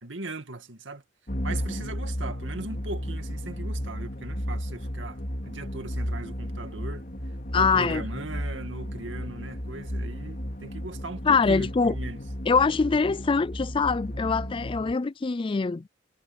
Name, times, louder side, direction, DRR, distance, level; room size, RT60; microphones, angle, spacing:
voice 1, 0.0-1.0 1.4-7.1 7.5-12.2, right 2 dB, 70° right, 2.3 m, -38 dB
sound 1, 1.3-14.9, equal, 45° left, 4.0 m, -34 dB
voice 2, 7.5-8.0 11.3-11.9 12.5-15.8, left 4 dB, 25° left, 0.4 m, -23 dB
head